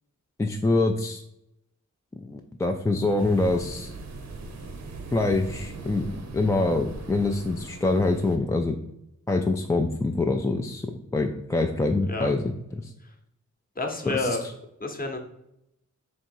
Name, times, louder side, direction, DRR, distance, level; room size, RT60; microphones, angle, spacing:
voice 1, 0.4-1.2 2.2-3.9 5.1-8.8 9.3-12.5 12.8-12.9 14.1-14.5, left 2 dB, 10° left, 3 dB, 0.3 m, -25 dB
sound 1, 3.2-8.4, right 3 dB, 60° right, 0.7 m, -40 dB
voice 2, 13.8-14.4 14.8-15.2, left 3 dB, 30° left, 3 dB, 0.8 m, -29 dB
3.7 x 3.0 x 4.5 m, 0.82 s
wide cardioid pair, 85°, 30 cm